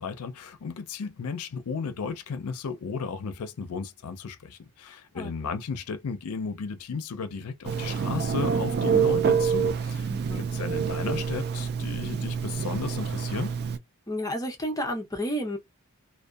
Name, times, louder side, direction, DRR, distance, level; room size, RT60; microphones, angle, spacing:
voice 1, 0.0-10.1 10.4-13.5, left 5 dB, 80° left, 0.5 m, -34 dB
Telephone, 7.6-13.8, right 6 dB, 45° right, 0.3 m, -27 dB
voice 2, 10.1-10.5 14.1-15.6, equal, 15° left, 0.6 m, -31 dB
2.6 x 2.2 x 2.3 m
head